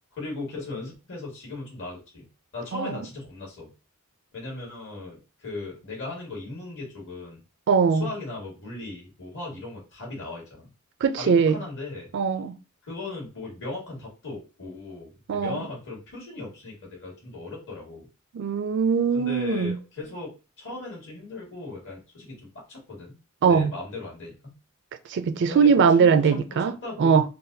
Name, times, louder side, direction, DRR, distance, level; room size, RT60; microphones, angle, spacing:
voice 1, 0.1-2.3 2.5-3.7 4.3-7.4 8.0-10.7 11.1-12.1 12.8-18.1 19.1-23.1 23.5-24.6 25.5-27.2, left 3 dB, 60° left, 1.7 m, -38 dB
voice 2, 7.7-8.1 11.0-11.6 12.1-12.5 15.3-15.6 18.3-19.7 23.4-23.7 25.1-26.7 27.0-27.2, right 6 dB, 55° right, 0.4 m, -21 dB
4.0 x 2.3 x 2.6 m
head